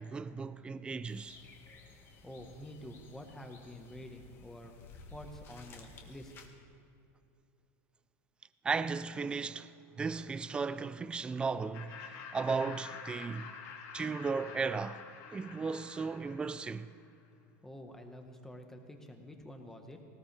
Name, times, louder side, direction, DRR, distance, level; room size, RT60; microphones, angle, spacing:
voice 1, 0.0-1.4 8.6-9.7 10.0-13.5 13.9-15.0 15.3-16.9, right 4 dB, 10° right, 0.4 m, -35 dB
sound 1, 1.0-6.5, left 3 dB, 30° left, 1.8 m, -55 dB
voice 2, 2.2-4.7 5.1-6.3 17.6-20.0, left 1 dB, 5° left, 1.4 m, -48 dB
Laughter, 11.7-17.0, left 6 dB, 45° left, 2.3 m, -48 dB
20.0 x 19.0 x 3.5 m
supercardioid pair, 155°, 8 cm